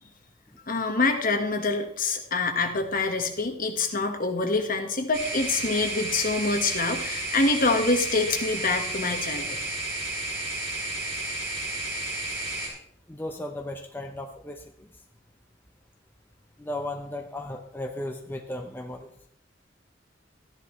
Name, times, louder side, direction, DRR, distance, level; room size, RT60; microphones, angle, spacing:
voice 1, 0.7-9.6, left 3 dB, 50° left, 5 dB, 1.5 m, -26 dB
sound 1, 5.1-12.7, right 2 dB, 85° right, 4.9 m, -32 dB
voice 2, 13.1-15.0 16.6-19.1, left 1 dB, 10° left, 3 dB, 0.7 m, -36 dB
14.0 x 10.5 x 3.2 m, 0.66 s
head